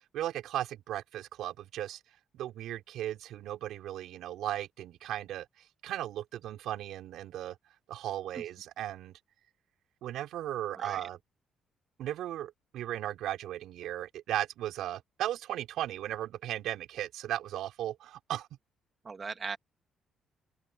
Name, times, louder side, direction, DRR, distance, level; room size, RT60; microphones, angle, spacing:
voice 1, 0.1-2.0 2.3-5.5 5.8-7.6 7.9-9.2 10.0-11.2 12.0-18.5, right 12 dB, 80° right, 5.6 m, -36 dB
voice 2, 19.0-19.6, right 5 dB, 30° right, 2.2 m, -38 dB
open air
cardioid pair, 150°, 0 cm